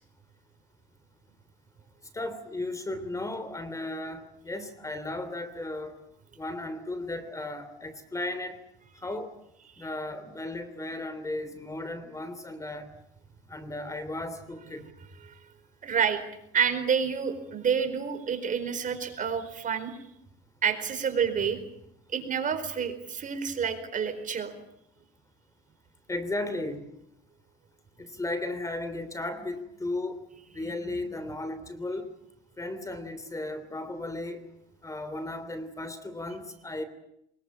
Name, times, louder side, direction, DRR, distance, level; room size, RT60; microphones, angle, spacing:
voice 1, 2.1-5.9 6.4-8.6 9.0-9.3 9.8-12.9 13.5-14.9 26.1-26.9 28.0-30.2 30.5-32.1 32.6-34.4 34.8-36.8, left 2 dB, 15° left, 12 dB, 3.0 m, -35 dB
voice 2, 15.8-16.2 16.5-20.0 20.6-21.6 22.1-24.5 30.6-31.0, right 7 dB, 40° right, 9 dB, 4.5 m, -29 dB
24.0 x 22.0 x 8.7 m, 0.77 s
supercardioid pair, 100°, 21 cm